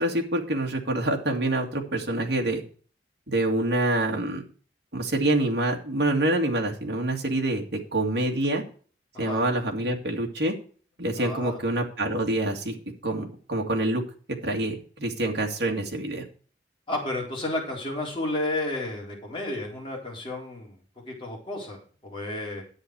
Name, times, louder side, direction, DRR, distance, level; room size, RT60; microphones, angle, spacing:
voice 1, 0.0-2.6 3.3-4.4 4.9-8.6 9.2-10.5 11.0-12.7 13.0-14.0 14.4-16.2, right 1 dB, 65° right, 1 dB, 2.2 m, -26 dB
voice 2, 11.2-11.6 16.9-20.8 21.1-22.6, left 1 dB, 30° left, -2 dB, 3.9 m, -32 dB
10.5 x 8.6 x 4.7 m, 0.42 s
head